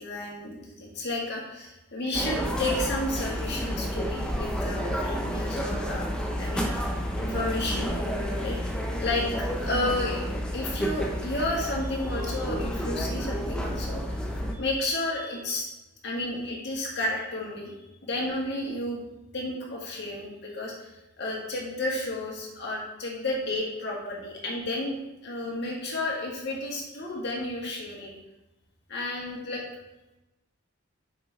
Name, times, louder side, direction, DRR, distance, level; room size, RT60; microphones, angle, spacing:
voice 1, 0.0-6.1 6.4-10.2 10.5-14.2 14.5-15.7 16.0-17.8 18.0-19.0 19.3-20.7 21.2-25.0 25.2-28.1 28.9-29.6, left 2 dB, 50° left, -3 dB, 1.9 m, -32 dB
sound 1, 2.1-14.5, equal, 5° left, 0.6 m, -30 dB
6.6 x 6.3 x 3.6 m, 0.97 s
head